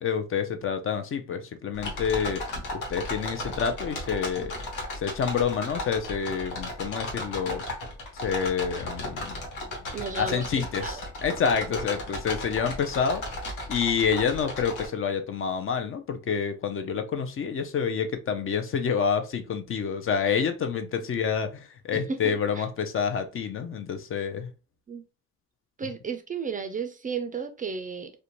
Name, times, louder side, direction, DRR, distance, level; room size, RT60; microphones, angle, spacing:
voice 1, 0.0-2.4 2.7-4.5 4.9-7.6 8.2-9.3 10.2-13.2 13.7-24.5, left 6 dB, 45° left, 0.5 m, -28 dB
sound 1, 1.7-14.9, left 1 dB, 90° left, 0.9 m, -35 dB
voice 2, 9.9-10.5 10.8-11.0 21.9-22.7 24.9-25.0 25.8-28.1, right 5 dB, 30° right, 0.4 m, -33 dB
2.4 x 2.2 x 2.9 m
cardioid pair, 90°, 30 cm